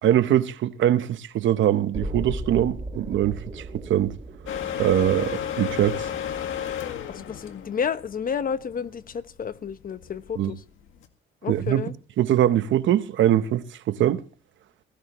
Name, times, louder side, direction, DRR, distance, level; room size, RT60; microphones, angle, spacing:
voice 1, 0.0-4.1 4.8-6.1 10.4-10.5 11.4-11.9 12.2-14.2, right 11 dB, 70° right, 0.9 m, -22 dB
sound 1, 1.9-7.9 8.2-8.3, right 1 dB, 30° right, 2.5 m, -38 dB
sound 2, 4.5-11.1, left 9 dB, 85° left, 1.8 m, -33 dB
voice 2, 7.1-10.6 11.4-11.9, left 7 dB, 45° left, 1.0 m, -31 dB
16.5 x 16.5 x 3.0 m
cardioid pair, 90°, 20 cm